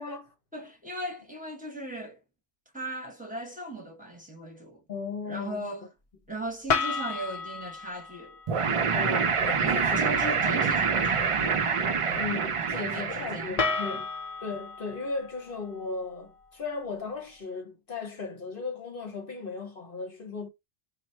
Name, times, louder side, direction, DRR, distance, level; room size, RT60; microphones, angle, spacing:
voice 1, 0.0-0.3 4.9-5.7 8.9-10.0 12.2-14.1 14.4-20.5, left 4 dB, 60° left, 1.0 m, -36 dB
voice 2, 0.5-2.2 2.7-4.8 5.3-5.9 6.3-8.4 9.6-12.2 12.7-13.5 13.9-14.0, right 1 dB, 10° right, 1.0 m, -38 dB
sound 1, 6.7-8.8 13.6-16.8, left 5 dB, 45° left, 0.5 m, -33 dB
sound 2, 8.5-13.9, right 5 dB, 50° right, 0.4 m, -26 dB
4.0 x 2.1 x 4.3 m
omnidirectional pair, 1.0 m